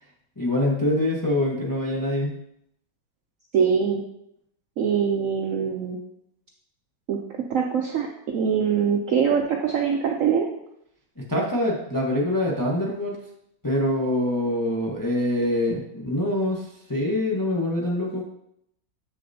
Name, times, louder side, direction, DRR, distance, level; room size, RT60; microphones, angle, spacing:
voice 1, 0.4-2.3 11.2-13.2 13.6-18.2, left 1 dB, 20° left, -3 dB, 0.5 m, -25 dB
voice 2, 3.5-4.0 4.8-6.0 7.1-7.2 7.5-8.1 8.3-10.5, right 7 dB, 90° right, 1 dB, 0.7 m, -23 dB
7.6 x 6.5 x 2.7 m, 0.77 s
omnidirectional pair, 2.1 m